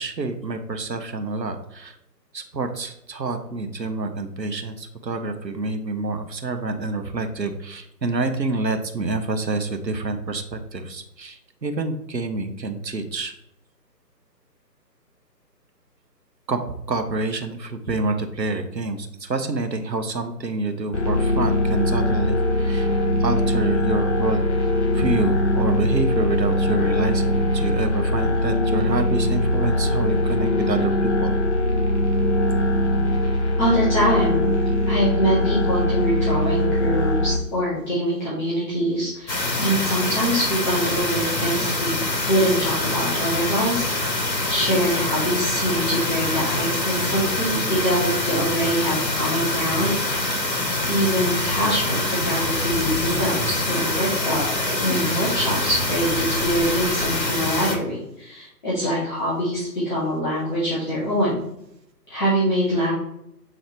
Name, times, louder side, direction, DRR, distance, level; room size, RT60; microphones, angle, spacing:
voice 1, 0.0-2.0 2.3-13.3 16.5-22.9 23.2-24.4 24.9-31.3, right 3 dB, 80° right, 6 dB, 1.1 m, -27 dB
sound 1, 20.9-37.4, left 1 dB, 45° left, 1.1 m, -21 dB
voice 2, 33.6-34.5 34.9-41.9 42.2-50.5 50.8-54.4 54.8-61.4 62.1-62.9, equal, 25° left, -10 dB, 2.2 m, -24 dB
sound 2, 39.3-57.8, left 2 dB, 75° left, 1.9 m, -25 dB
sound 3, 52.2-57.1, equal, 20° right, 0.9 m, -33 dB
7.9 x 4.0 x 3.2 m, 0.80 s
figure-of-eight pair, 145°, 50 cm